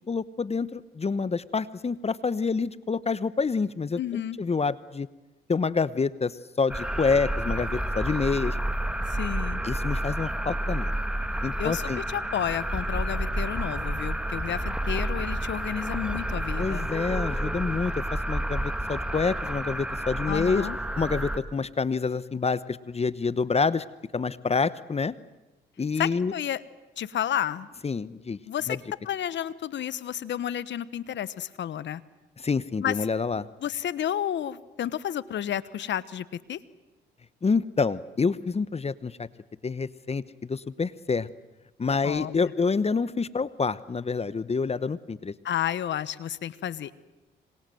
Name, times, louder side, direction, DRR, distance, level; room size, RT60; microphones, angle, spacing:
voice 1, 0.1-5.1 5.5-8.6 9.6-10.9 11.4-12.0 16.6-17.9 18.3-20.7 21.0-23.8 24.1-25.1 25.8-26.3 27.8-28.4 28.7-28.8 32.4-33.5 37.4-39.3 39.6-41.3 41.8-45.3, left 4 dB, 30° left, 17 dB, 1.0 m, -27 dB
voice 2, 3.9-4.4 9.1-9.6 11.6-16.9 20.3-20.8 26.0-26.6 27.0-27.7 28.5-28.8 29.0-32.0 32.8-33.0 33.6-36.6 42.0-42.5 45.4-47.0, left 10 dB, 65° left, 18 dB, 1.1 m, -31 dB
sound 1, 6.7-21.4, right 1 dB, 5° right, 2.4 m, -30 dB
26.0 x 25.5 x 7.8 m, 1.0 s
supercardioid pair, 65°, 20 cm